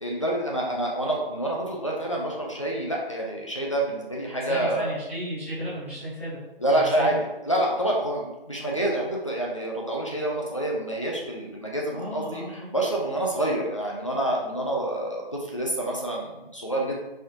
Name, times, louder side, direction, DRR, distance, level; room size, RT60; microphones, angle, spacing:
voice 1, 0.0-4.9 6.6-17.0, right 1 dB, 35° left, -3 dB, 0.5 m, -27 dB
voice 2, 4.4-6.4 6.7-7.1 11.9-12.7, equal, 15° right, -12 dB, 0.9 m, -34 dB
4.1 x 2.9 x 2.5 m, 0.98 s
figure-of-eight pair, 160°, 30 cm